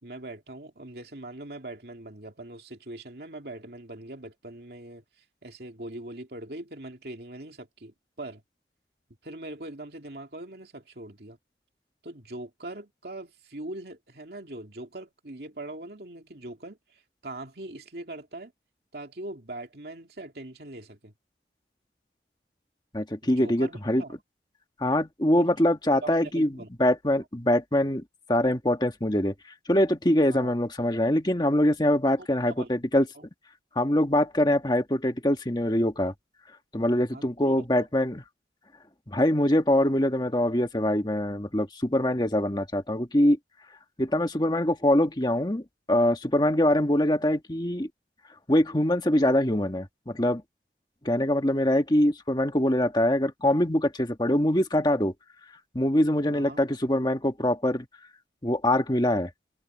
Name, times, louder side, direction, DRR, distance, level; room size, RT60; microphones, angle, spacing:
voice 1, 0.0-5.0 5.4-8.4 9.2-11.4 12.0-18.5 18.9-21.1 23.2-24.2 25.4-25.5 26.0-26.7 30.3-30.5 32.2-32.7 33.1-33.3 37.1-37.9 56.3-56.6, right 2 dB, 60° right, 2.8 m, -41 dB
voice 2, 22.9-24.0 24.8-26.5 26.8-28.0 28.3-29.3 29.7-33.0 33.7-36.1 36.7-38.2 39.1-43.4 44.0-47.9 48.5-50.4 51.0-55.1 55.7-57.9 58.4-59.3, left 1 dB, 25° left, 1.5 m, -24 dB
head